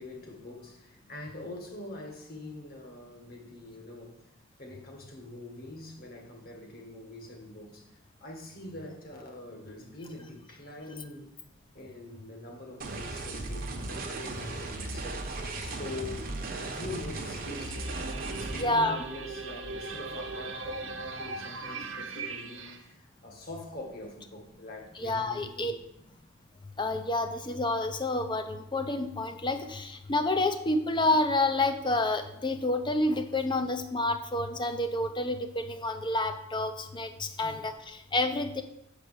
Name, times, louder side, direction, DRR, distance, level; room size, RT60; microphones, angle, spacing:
voice 1, 0.0-4.3 4.6-11.3 11.7-16.2 16.5-17.9 18.3-25.8 37.4-37.7, left 2 dB, 50° left, 1.8 m, -44 dB
sound 1, 12.8-18.6, right 2 dB, 45° right, 1.0 m, -36 dB
sound 2, 17.3-22.8, right 3 dB, 70° right, 0.9 m, -39 dB
voice 2, 18.6-19.0 25.0-25.7 26.8-38.6, left 2 dB, 25° left, 0.7 m, -29 dB
7.1 x 5.0 x 6.4 m
head